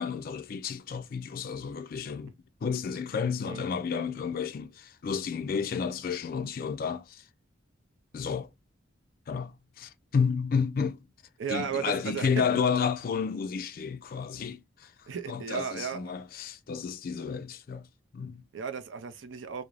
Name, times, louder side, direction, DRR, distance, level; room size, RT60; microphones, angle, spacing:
voice 1, 0.0-2.3 2.6-7.2 8.1-8.5 9.3-11.0 11.5-17.9 18.1-18.4, left 6 dB, 50° left, 0.3 m, -31 dB
voice 2, 11.4-12.4 15.1-16.1 18.5-19.6, right 7 dB, 75° right, 0.4 m, -34 dB
2.5 x 2.0 x 3.0 m
head